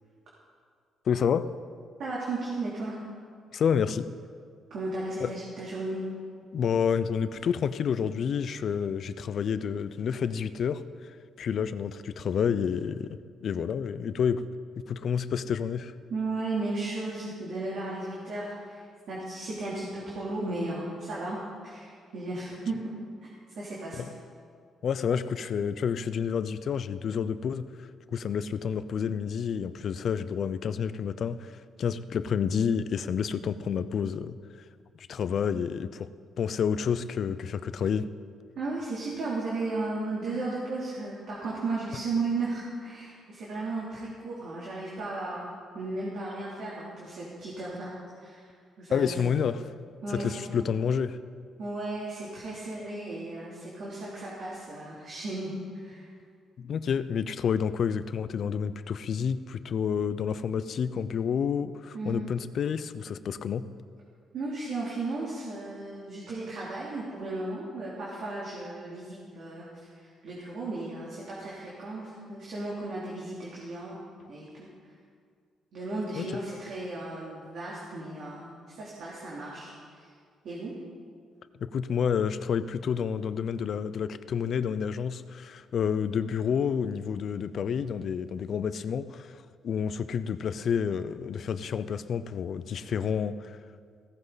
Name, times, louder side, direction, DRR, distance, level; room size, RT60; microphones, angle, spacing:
voice 1, 1.1-1.5 3.5-4.1 5.2-5.3 6.5-10.8 11.4-14.4 14.8-15.9 24.0-24.1 24.8-34.4 35.0-36.1 36.4-38.1 48.9-49.7 50.1-51.2 56.6-63.6 76.2-76.3 81.6-89.4 89.6-93.6, left 7 dB, 60° left, 13 dB, 0.6 m, -29 dB
voice 2, 2.0-3.0 4.7-6.0 16.1-22.9 23.5-24.1 38.5-45.5 45.7-47.9 48.2-48.5 48.8-49.3 50.0-50.6 51.6-56.1 61.9-62.3 64.3-74.0 74.3-74.7 75.7-80.1 80.4-80.8, right 2 dB, 65° right, -6 dB, 3.3 m, -35 dB
16.5 x 14.5 x 4.1 m, 2.1 s
cardioid pair, 90°, 0 cm